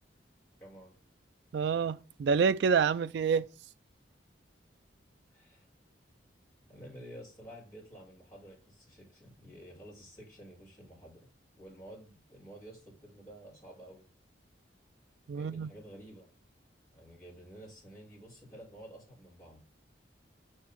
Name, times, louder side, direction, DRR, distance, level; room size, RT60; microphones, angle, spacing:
voice 1, 0.6-0.9 5.3-5.7 6.7-11.2 11.6-14.1 15.3-16.3 16.9-19.6, right 1 dB, 15° left, 4.7 m, -51 dB
voice 2, 1.5-3.4 15.3-15.7, right 6 dB, 65° right, 0.3 m, -27 dB
6.1 x 4.6 x 5.8 m
head